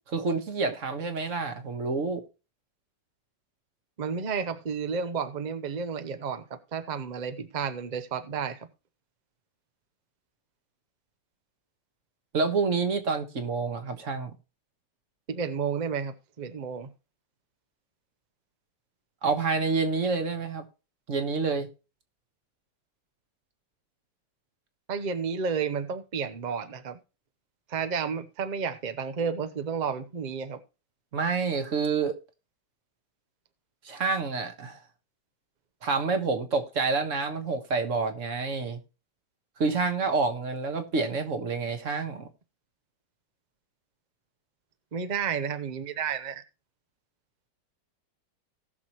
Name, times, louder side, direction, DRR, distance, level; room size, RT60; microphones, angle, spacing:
voice 1, 0.1-2.2 12.3-14.3 19.2-20.6 21.1-21.7 31.1-32.2 33.8-34.8 35.8-38.8 39.6-42.3, right 4 dB, 45° right, 1.5 m, -28 dB
voice 2, 4.0-8.7 15.3-16.9 24.9-27.0 27.7-30.6 44.9-46.4, right 6 dB, 65° right, 0.4 m, -31 dB
18.5 x 6.4 x 3.0 m
omnidirectional pair, 2.0 m